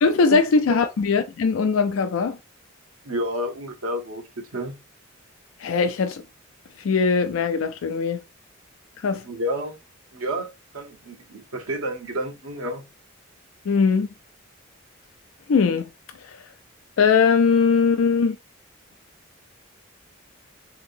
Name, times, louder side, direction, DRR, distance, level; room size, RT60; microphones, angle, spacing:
voice 1, 0.0-2.4 5.6-6.2 6.8-8.2 9.0-9.2 13.7-14.1 15.5-15.9 16.2-16.4 17.0-18.4, left 5 dB, 85° left, 0.4 m, -20 dB
voice 2, 3.0-4.2 4.5-4.8 9.2-9.8 10.1-10.5 10.7-12.8, equal, 90° right, 1.0 m, -30 dB
3.7 x 2.9 x 2.6 m
head